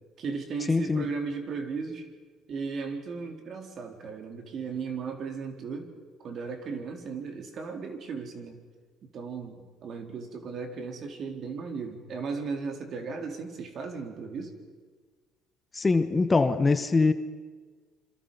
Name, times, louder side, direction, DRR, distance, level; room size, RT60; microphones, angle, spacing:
voice 1, 0.2-2.1 2.5-5.9 6.2-8.6 9.1-14.5, right 5 dB, 50° right, 3.9 m, -36 dB
voice 2, 0.7-1.1 15.7-17.1, left 3 dB, 20° left, 1.1 m, -23 dB
27.5 x 26.0 x 5.7 m
cardioid pair, 110°, 0 cm